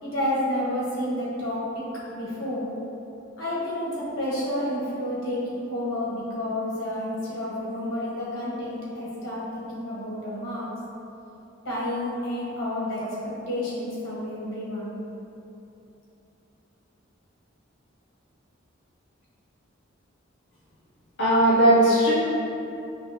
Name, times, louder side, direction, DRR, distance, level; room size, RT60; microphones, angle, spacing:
voice 1, 0.0-1.8 2.1-2.7 3.4-10.7 11.6-13.0 13.5-14.9, left 1 dB, 90° left, -7 dB, 1.2 m, -30 dB
voice 2, 21.2-22.1, right 1 dB, 55° left, -8 dB, 0.5 m, -18 dB
5.6 x 2.1 x 2.8 m, 2.9 s
head